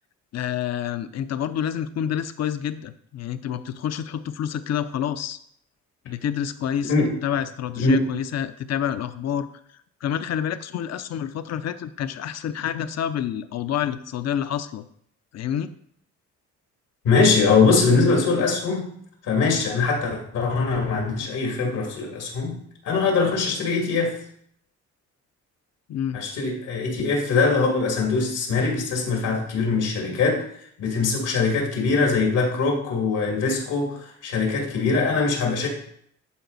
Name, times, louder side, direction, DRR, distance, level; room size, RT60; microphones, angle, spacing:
voice 1, 0.3-5.4 6.0-6.9 7.2-9.5 10.0-14.8 15.3-15.7 25.9-26.2, left 9 dB, 60° left, 12 dB, 0.7 m, -28 dB
voice 2, 17.0-18.9 19.2-24.2 26.1-30.5 30.8-35.7, left 4 dB, 85° left, 0 dB, 2.5 m, -22 dB
11.5 x 4.1 x 4.0 m, 0.67 s
cardioid pair, 90°, 30 cm